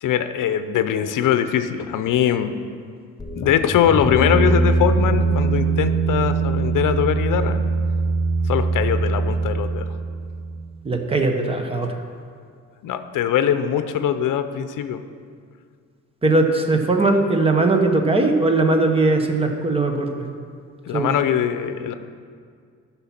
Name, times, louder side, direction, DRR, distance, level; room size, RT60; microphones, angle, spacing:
voice 1, 0.0-2.5 3.3-7.6 8.5-9.8 12.8-15.0 20.9-21.9, left 9 dB, 75° left, 10 dB, 0.7 m, -21 dB
sound 1, 3.2-10.6, right 3 dB, 10° left, 0.5 m, -22 dB
voice 2, 10.8-11.9 16.2-20.1 20.9-21.1, right 2 dB, 20° right, 4 dB, 0.8 m, -19 dB
12.0 x 5.7 x 5.9 m, 2.1 s
cardioid pair, 170°, 32 cm